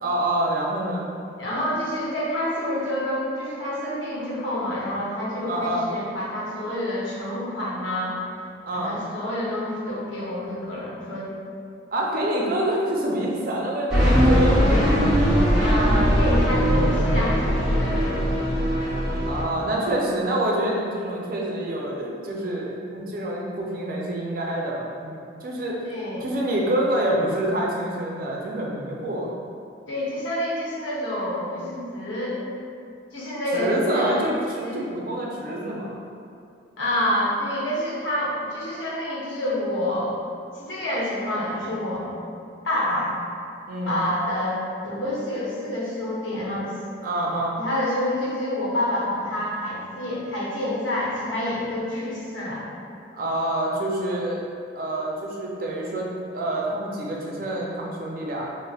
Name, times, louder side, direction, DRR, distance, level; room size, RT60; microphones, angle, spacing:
voice 1, 0.0-1.1 5.5-5.9 8.6-9.0 11.9-15.3 19.3-25.8 26.2-29.3 33.5-36.0 43.7-44.0 47.0-47.6 53.1-54.4 54.7-58.5, right 1 dB, 50° right, -2 dB, 0.4 m, -27 dB
voice 2, 1.4-8.2 8.7-11.3 15.6-18.3 19.8-20.0 25.8-26.3 29.9-32.4 33.1-34.2 34.6-34.8 36.8-40.1 40.5-42.0 42.6-43.1 43.9-44.6 44.8-46.7 47.5-52.6, left 1 dB, 85° left, -6 dB, 0.8 m, -28 dB
sound 1, 13.9-19.4, equal, 5° right, 0.6 m, -20 dB
5.0 x 2.0 x 2.3 m, 2.4 s
head